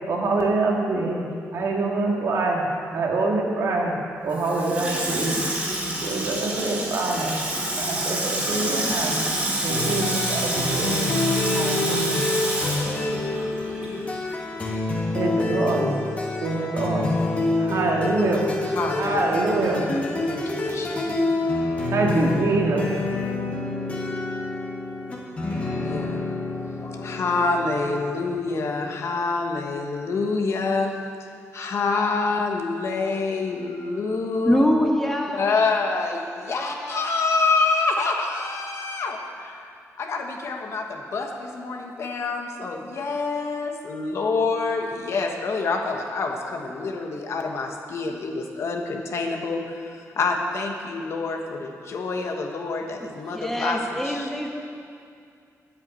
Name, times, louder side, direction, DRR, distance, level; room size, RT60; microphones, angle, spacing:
voice 1, 0.1-1.2 1.5-2.6 2.9-3.9 4.2-5.4 5.8-7.4 7.8-9.2 9.6-11.1 11.5-12.2 15.1-15.9 16.4-17.1 17.6-18.4 19.0-19.8 21.0-21.1 21.9-22.9, right 3 dB, 65° right, -1 dB, 1.9 m, -25 dB
Water tap faucet / Sink (filling or washing), 4.3-14.0 14.3-14.4, right 1 dB, 25° right, 2.6 m, -27 dB
sound 1, 9.7-29.1, left 2 dB, 25° left, 1.5 m, -27 dB
voice 2, 18.7-19.4 20.2-21.2 25.8-26.3 26.8-30.9 31.5-34.6 35.4-54.3, left 3 dB, 55° left, 3 dB, 1.2 m, -27 dB
voice 3, 34.4-35.5 36.4-37.0 53.0-54.5, equal, 5° left, 1 dB, 1.1 m, -25 dB
10.5 x 8.2 x 8.3 m, 2.4 s
wide cardioid pair, 175°, 6 cm